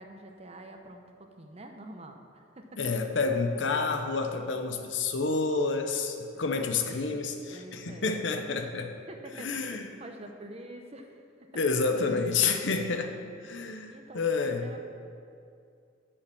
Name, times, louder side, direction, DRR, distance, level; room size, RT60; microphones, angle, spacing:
voice 1, 0.0-2.8 7.5-8.1 8.6-8.7 9.1-11.2 13.9-14.9, right 1 dB, 35° right, 4 dB, 0.8 m, -46 dB
voice 2, 2.8-8.9 9.4-9.9 11.5-13.1 13.4-14.7, left 4 dB, 75° left, 6 dB, 0.8 m, -29 dB
9.6 x 5.8 x 6.9 m, 2.4 s
head